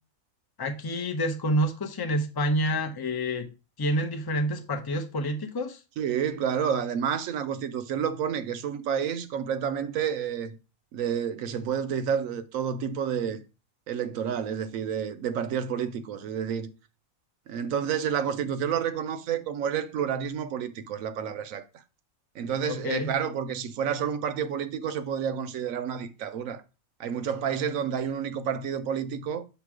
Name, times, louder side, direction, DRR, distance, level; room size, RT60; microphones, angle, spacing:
voice 1, 0.6-3.5 3.8-5.8 22.7-23.1, equal, 25° left, 0.5 m, -28 dB
voice 2, 6.0-10.6 10.9-13.4 13.9-16.7 17.5-21.8 22.3-26.6 27.0-29.4, right 8 dB, 75° right, 1.1 m, -30 dB
7.0 x 3.0 x 4.8 m
omnidirectional pair, 1.5 m